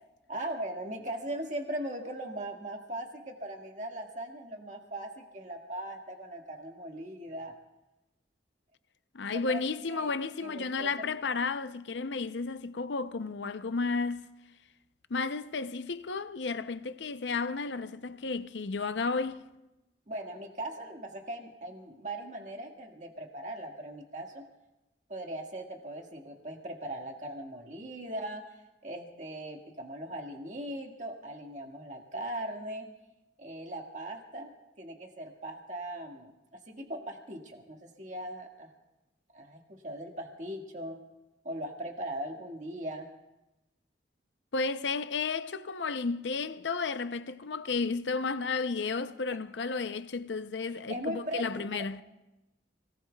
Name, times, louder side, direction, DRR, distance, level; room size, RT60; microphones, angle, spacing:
voice 1, 0.3-7.5 9.3-9.6 9.9-10.1 10.4-11.1 20.1-24.5 25.1-28.5 28.8-32.9 33.4-38.7 39.3-41.0 41.4-43.1 50.7-51.4 51.8-51.9, right 1 dB, 45° right, 1.8 m, -39 dB
voice 2, 9.1-14.3 15.1-19.4 44.5-52.0, left 4 dB, 80° left, 0.6 m, -33 dB
29.0 x 19.0 x 2.3 m
head